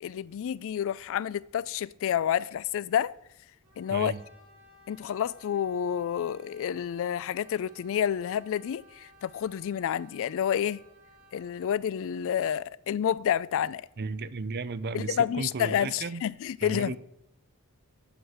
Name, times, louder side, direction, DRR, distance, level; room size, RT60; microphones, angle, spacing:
voice 1, 0.0-3.1 3.8-4.1 4.9-10.8 11.3-13.9 14.9-17.0, left 9 dB, 65° left, 0.3 m, -29 dB
Brass instrument, 3.6-11.8, equal, 80° right, 4.1 m, -57 dB
voice 2, 3.9-4.2 14.0-16.2 16.6-17.0, right 4 dB, 50° right, 0.5 m, -34 dB
8.1 x 5.8 x 7.9 m
head